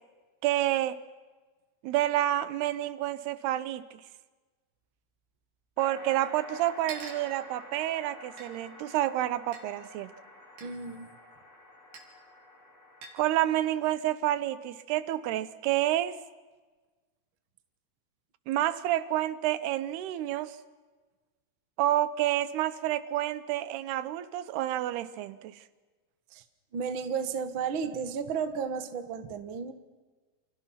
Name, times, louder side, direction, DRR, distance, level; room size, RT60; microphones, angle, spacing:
voice 1, 0.4-1.0 1.8-4.0 5.8-10.1 13.1-16.2 18.5-20.6 21.8-25.6, right 13 dB, 85° right, 14 dB, 2.9 m, -29 dB
sound 1, 4.9-5.0 5.1-5.2 6.1-6.2 6.9-7.3 8.4-8.5 9.5-9.6 10.6-10.7 11.9-12.1 13.0-13.2, right 4 dB, 65° right, 4.8 m, -44 dB
sound 2, 5.8-13.6, left 2 dB, 30° left, 6.3 m, -49 dB
voice 2, 10.6-11.1 26.3-26.4 26.7-29.7, right 6 dB, 50° right, 8 dB, 1.5 m, -33 dB
29.0 x 27.5 x 5.9 m, 1.3 s
omnidirectional pair, 4.6 m